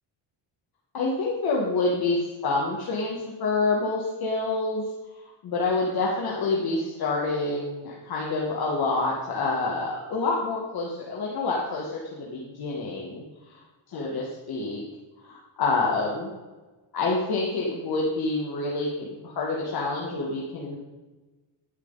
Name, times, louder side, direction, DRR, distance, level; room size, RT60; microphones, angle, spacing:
voice 1, 0.9-4.8 5.4-13.3 13.9-14.8 15.2-16.3 16.9-20.8, left 3 dB, 50° left, -3 dB, 2.0 m, -27 dB
11.5 x 10.5 x 4.1 m, 1.2 s
cardioid pair, 170°, 47 cm